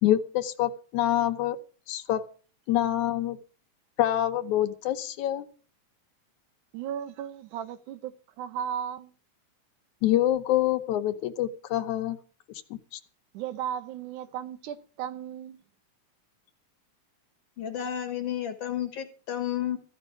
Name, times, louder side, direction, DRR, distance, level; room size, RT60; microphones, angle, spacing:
voice 1, 0.0-1.6 1.9-2.2 2.7-3.4 4.0-5.5 10.0-12.2 12.7-13.0, left 12 dB, 75° left, 2.4 m, -26 dB
voice 2, 6.7-9.1 13.3-15.6, right 9 dB, 85° right, 2.4 m, -35 dB
voice 3, 17.6-19.8, left 10 dB, 55° left, 2.4 m, -31 dB
15.0 x 5.3 x 9.6 m
omnidirectional pair, 3.5 m